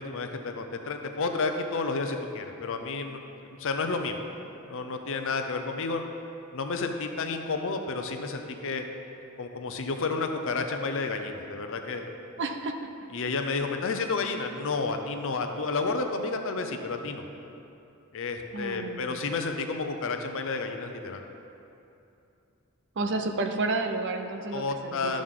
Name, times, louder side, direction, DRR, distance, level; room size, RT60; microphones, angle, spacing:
voice 1, 0.0-4.2 4.7-6.0 6.5-8.8 9.4-12.1 13.1-17.3 18.1-21.2 24.5-25.2, left 3 dB, 65° left, 5 dB, 0.7 m, -31 dB
voice 2, 12.4-12.9 18.5-19.1 23.0-25.2, right 2 dB, 55° right, 6 dB, 0.6 m, -31 dB
12.0 x 6.3 x 3.8 m, 2.7 s
head